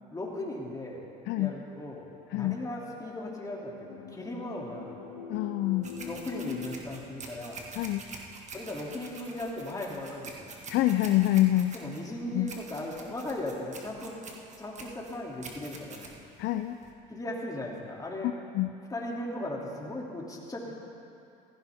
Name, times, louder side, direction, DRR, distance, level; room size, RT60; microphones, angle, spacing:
voice 1, 0.1-1.0 1.4-2.1 2.3-4.9 6.0-7.7 8.5-10.5 11.7-14.1 14.6-16.1 17.1-18.3 18.9-20.7, left 1 dB, 15° left, -2 dB, 2.7 m, -37 dB
sound 1, 1.9-6.8, left 6 dB, 85° left, 1.9 m, -44 dB
voice 2, 5.3-5.9 7.7-8.0 10.7-11.7 12.3-12.5 16.4-16.8 18.5-18.7, left 15 dB, 55° left, 8 dB, 0.5 m, -26 dB
sound 2, 5.8-16.9, right 3 dB, 35° right, 1.8 m, -46 dB
16.0 x 15.0 x 3.5 m, 2.6 s
supercardioid pair, 95°, 21 cm